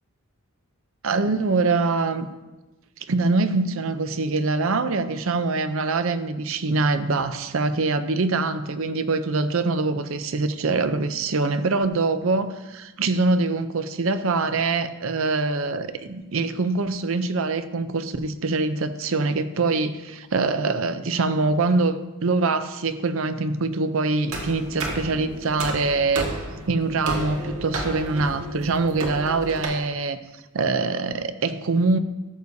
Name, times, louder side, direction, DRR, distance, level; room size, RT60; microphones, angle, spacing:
voice 1, 1.0-2.3 3.1-26.3 26.7-30.2 30.5-32.0, right 3 dB, 65° right, 11 dB, 0.6 m, -24 dB
sound 1, 24.3-29.6, right 2 dB, 85° right, 1.7 m, -32 dB
14.0 x 6.6 x 2.7 m, 1.1 s
head